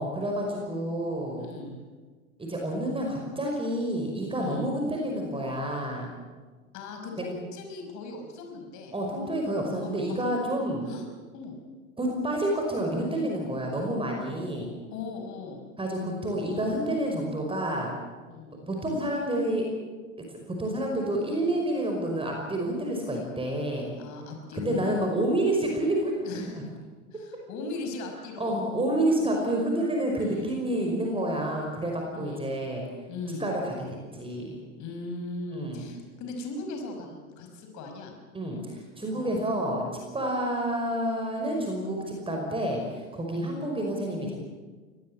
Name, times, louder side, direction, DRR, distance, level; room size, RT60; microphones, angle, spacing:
voice 1, 0.0-1.5 2.4-6.1 7.2-7.3 8.9-10.9 12.0-14.7 15.8-17.9 18.6-19.6 20.6-23.9 24.5-26.7 28.4-32.8 33.4-33.7 34.1-34.6 35.5-35.8 38.3-39.8 40.1-44.4, right 1 dB, 15° right, 1 dB, 5.4 m, -29 dB
voice 2, 1.4-1.8 4.3-4.7 6.7-8.9 9.8-10.5 10.9-11.1 11.3-11.6 14.9-15.7 18.3-18.6 24.0-25.0 26.2-26.7 27.1-28.6 29.3-29.5 30.2-30.6 32.1-32.5 33.1-33.5 34.8-38.2 39.1-39.4 43.4-43.6, left 3 dB, 45° left, 4 dB, 5.4 m, -39 dB
23.0 x 19.0 x 8.9 m, 1.4 s
figure-of-eight pair, 90°, 41 cm